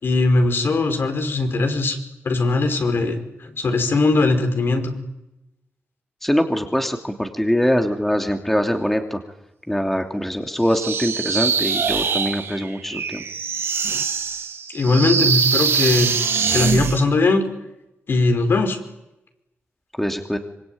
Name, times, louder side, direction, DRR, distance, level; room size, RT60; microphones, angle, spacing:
voice 1, 0.0-2.0 2.2-4.9 14.7-16.2 16.5-17.4 18.1-18.8, left 3 dB, 60° left, 6 dB, 5.4 m, -20 dB
voice 2, 6.2-9.2 9.7-13.2 20.0-20.4, equal, 5° left, 4 dB, 2.9 m, -23 dB
sound 1, 10.7-17.0, right 6 dB, 70° right, 2.4 m, -23 dB
25.5 x 24.0 x 9.5 m, 0.93 s
cardioid pair, 90°, 4 cm